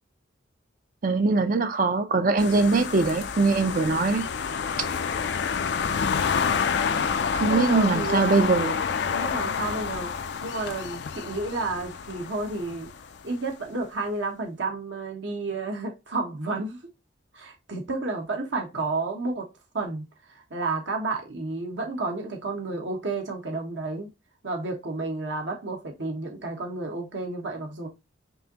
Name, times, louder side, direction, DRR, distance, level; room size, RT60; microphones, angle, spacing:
voice 1, 1.0-4.3 7.4-8.8, right 3 dB, 45° right, 0.5 m, -22 dB
sound 1, 2.4-13.2, left 6 dB, 60° left, 0.4 m, -28 dB
voice 2, 7.4-8.4 9.1-10.1 10.4-12.9 13.2-16.8 17.3-19.5 19.7-24.1 24.4-27.9, right 3 dB, 70° right, 1.2 m, -31 dB
5.4 x 2.7 x 2.8 m
head